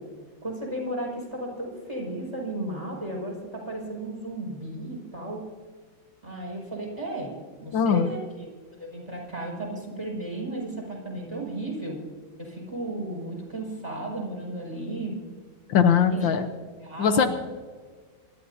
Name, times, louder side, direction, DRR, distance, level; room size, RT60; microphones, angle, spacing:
voice 1, 0.4-5.4 6.2-7.3 7.6-12.0 12.4-15.2 16.1-16.3 16.8-17.3, right 1 dB, 15° right, -3 dB, 5.8 m, -34 dB
voice 2, 7.7-8.1 15.7-16.5 17.0-17.3, left 7 dB, 80° left, 6 dB, 1.7 m, -20 dB
26.5 x 13.0 x 2.8 m, 1.5 s
omnidirectional pair, 2.1 m